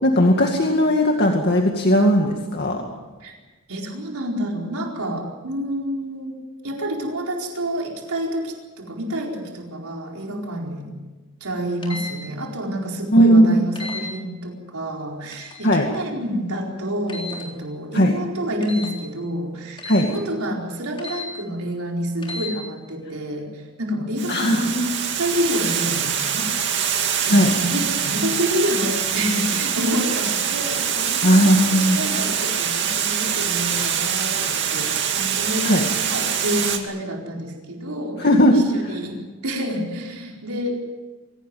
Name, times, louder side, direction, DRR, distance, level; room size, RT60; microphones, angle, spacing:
voice 1, 0.0-2.8 13.1-13.6 15.6-15.9 17.9-18.1 19.8-20.1 24.3-25.1 27.3-27.5 31.2-32.0 35.6-35.8 38.2-38.9, equal, 45° left, 1 dB, 2.2 m, -17 dB
voice 2, 3.7-6.4 6.6-11.0 11.4-24.7 25.2-35.8 36.1-39.2 39.4-40.9, equal, 85° right, 0 dB, 4.6 m, -28 dB
sound 1, 11.8-12.1 13.8-14.0 15.3-15.6 17.1-17.4 18.6-18.9 19.8-20.1 21.0-21.3 22.2-22.5, left 3 dB, 25° left, 3.7 m, -33 dB
Water, 24.2-36.8, right 8 dB, 50° right, 2.5 m, -24 dB
25.0 x 17.5 x 9.3 m, 1.2 s
head